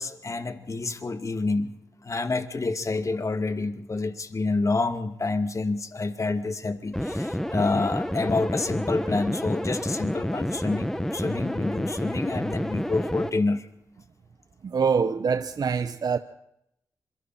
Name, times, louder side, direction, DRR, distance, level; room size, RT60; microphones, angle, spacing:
voice 1, 0.0-1.8 2.0-13.7, left 3 dB, 45° left, 2.4 m, -28 dB
sound 1, 6.9-13.3, equal, 5° left, 2.1 m, -29 dB
voice 2, 14.6-16.2, right 6 dB, 65° right, 1.1 m, -24 dB
26.5 x 23.5 x 4.5 m
supercardioid pair, 45°, 7 cm